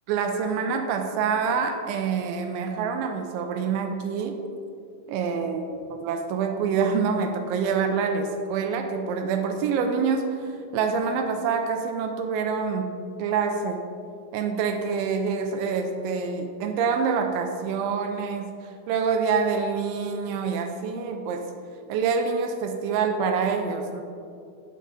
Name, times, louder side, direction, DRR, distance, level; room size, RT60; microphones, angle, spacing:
voice 1, 0.1-4.4 5.1-5.7 6.0-13.8 14.3-18.5 18.9-21.5 21.9-24.0, right 5 dB, 85° right, 5 dB, 2.9 m, -26 dB
9.0 x 8.6 x 4.0 m, 2.4 s
omnidirectional pair, 5.4 m